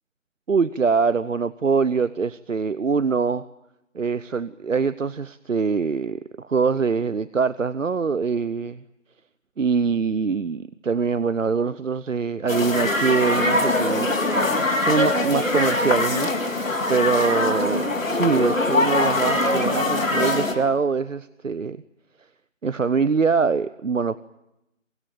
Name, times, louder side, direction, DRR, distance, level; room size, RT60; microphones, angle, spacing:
voice 1, 0.5-3.5 3.9-8.8 9.6-14.1 14.4-16.5 16.9-21.8 22.6-24.2, right 5 dB, 70° right, 16 dB, 0.9 m, -23 dB
sound 1, 12.5-20.5, left 2 dB, 80° left, 4.4 m, -22 dB
24.5 x 21.5 x 9.1 m, 0.86 s
figure-of-eight pair, 180°, 39 cm